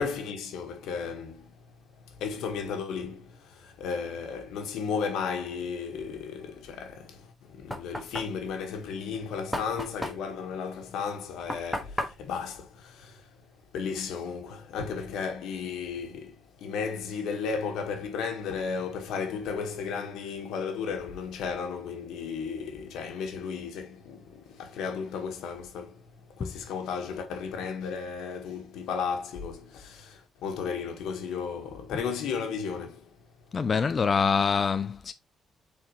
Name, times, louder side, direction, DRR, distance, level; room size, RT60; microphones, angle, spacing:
voice 1, 0.0-1.6 2.0-13.3 13.7-33.2, left 6 dB, 85° left, 1.5 m, -34 dB
Knock, 7.2-13.6, left 1 dB, ahead, 1.6 m, -37 dB
voice 2, 33.5-35.1, left 5 dB, 40° left, 0.4 m, -25 dB
7.3 x 4.3 x 3.1 m
cardioid pair, 90°, 0 cm